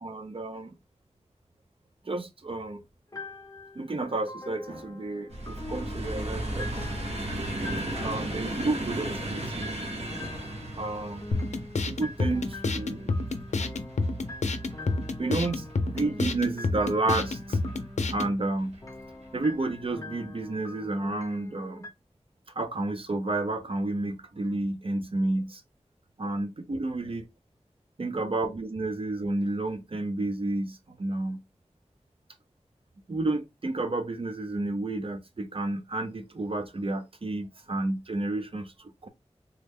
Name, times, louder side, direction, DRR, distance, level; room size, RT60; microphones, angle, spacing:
voice 1, 0.0-0.7 2.0-2.8 3.8-6.9 7.4-9.9 10.8-11.3 11.9-13.1 14.8-14.9 15.2-17.6 18.1-18.8 19.3-21.8 22.5-25.6 26.2-27.2 28.0-31.4 33.1-39.1, right 2 dB, 55° right, 0.5 m, -31 dB
sound 1, 3.1-21.9, left 2 dB, 30° left, 0.6 m, -44 dB
sound 2, 5.3-16.4 17.1-17.7 18.6-18.8 19.1-19.2, right 1 dB, 70° right, 1.1 m, -36 dB
sound 3, 11.3-18.3, left 3 dB, 90° left, 0.5 m, -29 dB
3.4 x 2.1 x 3.4 m
wide cardioid pair, 65°, 11 cm